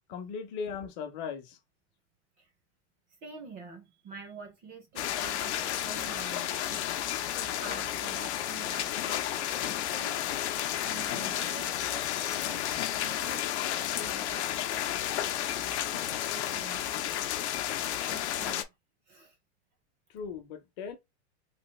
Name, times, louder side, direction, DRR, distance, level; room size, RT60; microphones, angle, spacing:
voice 1, 0.1-1.6 20.1-21.0, left 6 dB, 40° left, 0.7 m, -38 dB
voice 2, 3.2-9.3 9.6-10.2 10.8-14.5 15.9-16.9 18.1-18.7 19.1-19.4, right 4 dB, 25° right, 0.4 m, -47 dB
sound 1, 5.0-18.6, left 11 dB, 75° left, 0.6 m, -32 dB
3.3 x 2.4 x 3.1 m
supercardioid pair, 165°, 34 cm